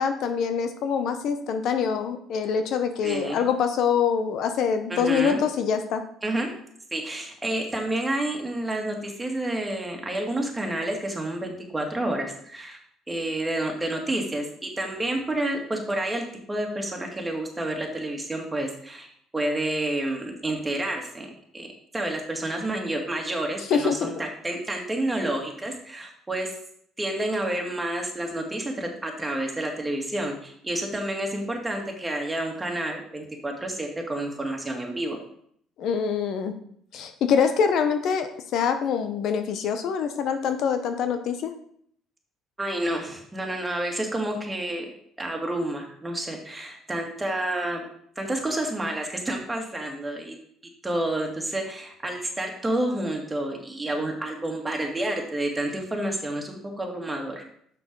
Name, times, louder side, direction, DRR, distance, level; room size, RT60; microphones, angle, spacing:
voice 1, 0.0-6.0 23.7-24.1 35.8-36.5 36.9-41.5, left 6 dB, 65° left, 8 dB, 0.8 m, -25 dB
voice 2, 3.0-3.4 4.9-5.4 6.2-6.5 6.9-12.8 13.1-21.7 21.9-26.5 27.0-35.2 42.6-44.9 45.2-47.9 48.2-50.4 50.8-57.4, right 1 dB, 15° right, 2 dB, 2.2 m, -29 dB
6.6 x 6.0 x 5.4 m, 0.66 s
supercardioid pair, 85°, 0 cm